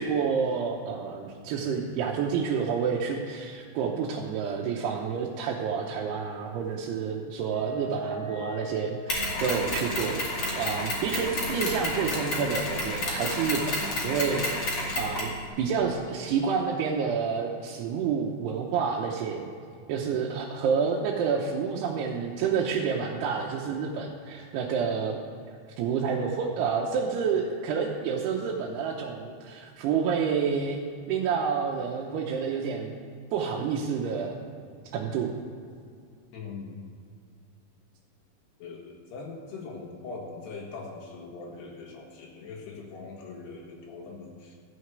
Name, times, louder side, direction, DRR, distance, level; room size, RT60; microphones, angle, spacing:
voice 1, 0.0-15.3 15.6-19.5 19.9-25.2 25.8-30.8 31.1-33.0 33.3-34.4 34.9-35.3, right 6 dB, 80° right, -1 dB, 2.8 m, -29 dB
Wind instrument woodwind instrument, 7.4-13.1, right 2 dB, 40° right, 2.0 m, -42 dB
Mechanisms, 9.1-15.4, left 1 dB, 40° left, 2.6 m, -30 dB
voice 2, 36.3-36.8 38.6-44.5, left 4 dB, 75° left, -1 dB, 3.8 m, -41 dB
14.0 x 6.4 x 8.0 m, 2.3 s
omnidirectional pair, 4.9 m